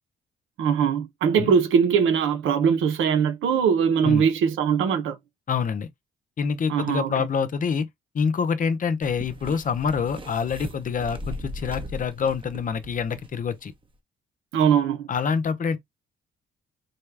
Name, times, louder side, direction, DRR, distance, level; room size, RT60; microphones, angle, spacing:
voice 1, 0.6-5.2 6.7-7.1 14.5-15.1, right 7 dB, 80° right, 0.9 m, -21 dB
voice 2, 5.5-5.9 6.4-7.9 8.1-13.7 15.1-15.8, left 6 dB, 45° left, 0.7 m, -26 dB
sound 1, 9.0-13.6 13.8-13.9, equal, 25° right, 0.9 m, -38 dB
4.1 x 2.3 x 3.2 m
cardioid pair, 90°, 20 cm